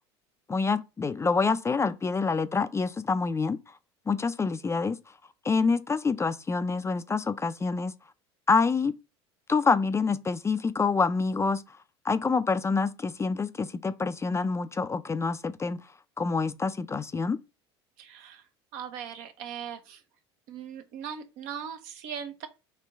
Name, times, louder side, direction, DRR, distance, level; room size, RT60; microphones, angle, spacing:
voice 1, 0.5-3.6 4.1-5.0 5.4-7.9 8.5-8.9 9.5-11.6 12.0-15.8 16.2-17.4, left 4 dB, 20° left, 0.4 m, -26 dB
voice 2, 18.0-18.4 18.7-20.0 20.5-22.5, right 8 dB, 65° right, 1.0 m, -39 dB
4.5 x 3.0 x 3.5 m
hypercardioid pair, 75°, 14 cm